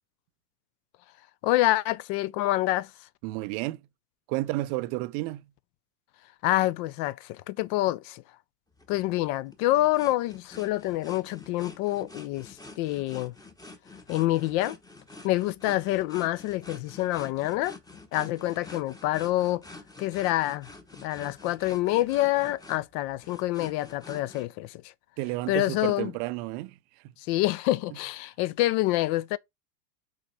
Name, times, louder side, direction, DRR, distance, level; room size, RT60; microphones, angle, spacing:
voice 1, 1.4-2.9 6.4-8.2 8.9-13.3 14.1-14.8 15.2-17.8 18.1-19.6 20.0-20.7 21.0-24.9 25.5-26.1 27.2-29.4, left 16 dB, 40° left, 0.5 m, -27 dB
voice 2, 3.2-3.8 4.3-5.4 25.2-26.7 27.0-27.1, right 19 dB, 40° right, 0.5 m, -31 dB
sound 1, 8.8-24.5, left 2 dB, 10° left, 1.0 m, -47 dB
6.3 x 4.2 x 4.6 m
hypercardioid pair, 100°, 49 cm